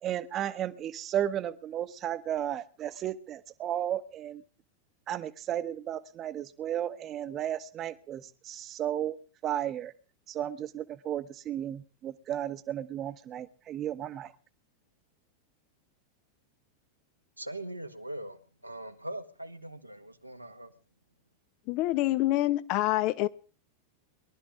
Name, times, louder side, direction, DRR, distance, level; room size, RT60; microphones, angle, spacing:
voice 1, 0.0-4.4 5.1-9.2 9.4-9.9 10.3-14.3, right 11 dB, 30° right, 1.1 m, -34 dB
voice 2, 17.4-20.7, right 1 dB, 90° right, 1.5 m, -41 dB
voice 3, 21.7-23.3, left 16 dB, 40° left, 0.9 m, -26 dB
22.5 x 12.5 x 3.6 m
figure-of-eight pair, 90°, 0 cm